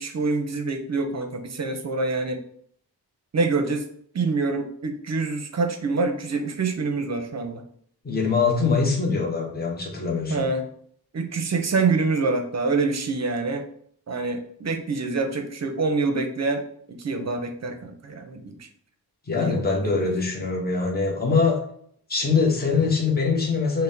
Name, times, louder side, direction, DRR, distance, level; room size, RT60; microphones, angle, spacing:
voice 1, 0.0-2.4 3.3-3.8 4.1-7.6 10.3-10.6 11.1-13.7 14.1-16.6 16.9-18.7 19.4-20.1, right 3 dB, 40° right, 6 dB, 0.6 m, -26 dB
voice 2, 8.0-10.5 19.3-21.6 22.1-23.8, left 4 dB, 25° left, 0 dB, 0.8 m, -23 dB
5.4 x 2.1 x 2.7 m, 0.62 s
wide cardioid pair, 105°, 40 cm